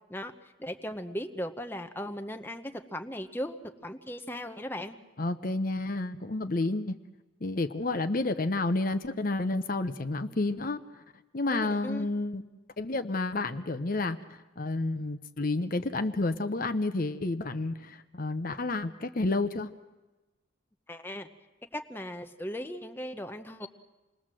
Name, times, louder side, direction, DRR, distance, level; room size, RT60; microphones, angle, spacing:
voice 1, 0.1-5.0 11.5-12.1 20.9-21.3 21.7-23.7, equal, 10° left, 6 dB, 0.9 m, -37 dB
voice 2, 5.2-7.0 7.4-10.8 11.3-12.4 12.8-14.2 14.6-19.7, left 2 dB, 40° left, 10 dB, 0.8 m, -30 dB
27.5 x 20.5 x 7.6 m, 1.1 s
head